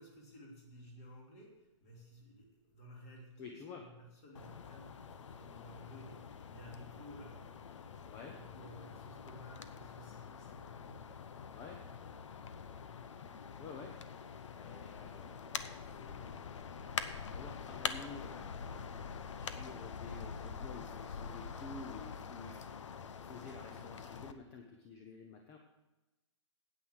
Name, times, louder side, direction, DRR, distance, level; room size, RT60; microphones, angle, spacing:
voice 1, 0.0-11.4, equal, 30° left, -1 dB, 2.8 m, -55 dB
voice 2, 3.4-3.8 8.1-8.4 11.5-11.8 13.6-13.9 14.6-15.6 15.9-16.7 17.0-18.5 18.8-22.6 23.2-25.6, left 4 dB, 15° left, 3 dB, 0.7 m, -51 dB
sound 1, 4.3-24.3, left 6 dB, 75° left, 0.9 m, -45 dB
9.1 x 8.8 x 6.4 m, 1.0 s
hypercardioid pair, 170°, 16 cm